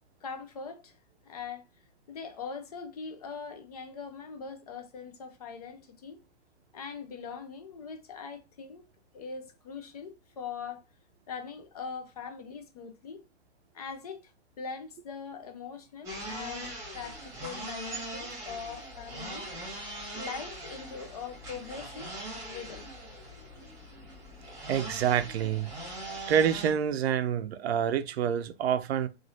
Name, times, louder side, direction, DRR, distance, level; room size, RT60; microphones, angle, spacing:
voice 1, 0.2-1.0 1.2-1.6 2.1-6.2 6.7-8.9 9.1-10.8 11.3-13.2 13.7-14.3 14.6-19.5 20.1-22.9, left 5 dB, 35° left, 0.4 m, -42 dB
sound 1, 16.0-26.7, right 1 dB, 10° right, 1.3 m, -41 dB
voice 2, 24.7-25.7 26.3-29.1, right 8 dB, 65° right, 0.5 m, -27 dB
3.0 x 2.4 x 2.6 m
hypercardioid pair, 155°, 34 cm